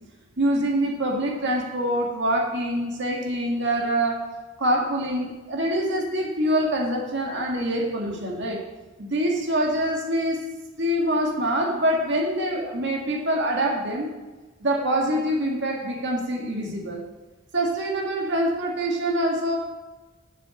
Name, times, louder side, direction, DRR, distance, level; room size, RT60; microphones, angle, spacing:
voice 1, 0.4-4.3 4.6-8.6 9.0-10.4 10.8-14.1 14.6-17.0 17.5-19.6, right 1 dB, 60° right, 0 dB, 1.9 m, -25 dB
8.2 x 7.5 x 7.0 m, 1.2 s
head